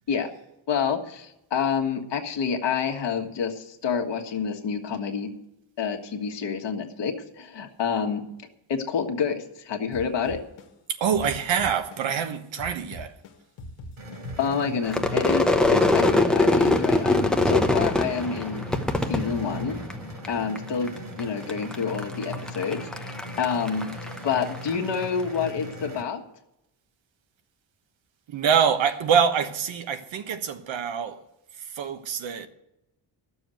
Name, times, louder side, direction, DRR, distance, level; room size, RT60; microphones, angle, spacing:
voice 1, 0.7-5.3 5.8-8.2 8.7-10.4 14.4-18.7 19.1-19.8 20.3-20.9 21.2-23.9 24.2-26.2, left 6 dB, 65° left, 1.6 m, -28 dB
sound 1, 9.9-12.3 12.6-14.9, left 1 dB, 90° left, 1.6 m, -41 dB
voice 2, 11.0-13.1 28.3-31.2 31.8-32.5, right 7 dB, 75° right, 1.3 m, -25 dB
sound 2, 14.0-26.0, equal, 50° right, 2.6 m, -39 dB
Crowd / Fireworks, 14.9-20.3 20.6-21.2 21.5-25.0, left 2 dB, ahead, 0.8 m, -23 dB
12.5 x 7.1 x 9.0 m
cardioid pair, 135°, 46 cm